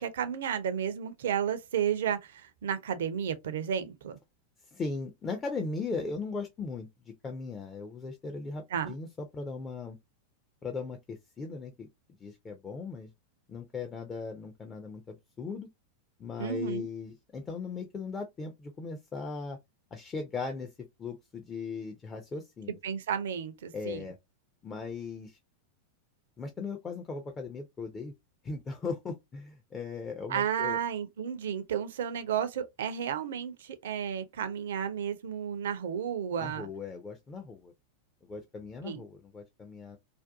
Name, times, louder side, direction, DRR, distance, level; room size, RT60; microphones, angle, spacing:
voice 1, 0.0-4.2 8.7-8.9 16.4-16.9 22.7-24.1 30.3-36.7 38.8-39.0, right 8 dB, 60° right, 0.4 m, -32 dB
voice 2, 4.7-10.0 10.6-11.9 12.2-13.1 13.5-15.7 16.2-19.6 19.9-20.7 21.0-22.8 23.7-24.2 24.6-25.4 26.4-28.1 28.4-30.8 36.4-37.7 38.3-40.0, left 4 dB, 20° left, 0.4 m, -38 dB
2.5 x 2.2 x 2.4 m
figure-of-eight pair, 90°, 0 cm